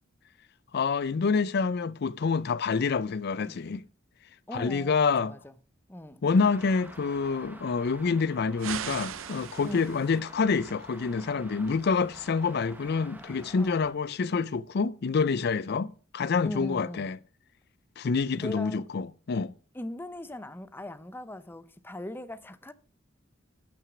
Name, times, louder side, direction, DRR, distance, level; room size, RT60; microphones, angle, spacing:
voice 1, 0.7-3.8 4.5-5.3 6.2-17.2 18.0-19.5, left 5 dB, 55° left, 0.4 m, -27 dB
voice 2, 4.5-5.5 5.9-6.2 9.6-10.0 13.5-13.9 16.4-17.1 18.3-18.8 19.7-22.7, left 1 dB, 10° left, 0.6 m, -40 dB
Traffic noise roadway noise, 6.3-13.9, right 1 dB, 10° right, 1.2 m, -49 dB
sound 1, 8.6-10.2, right 9 dB, 90° right, 0.6 m, -38 dB
12.5 x 6.1 x 6.1 m
head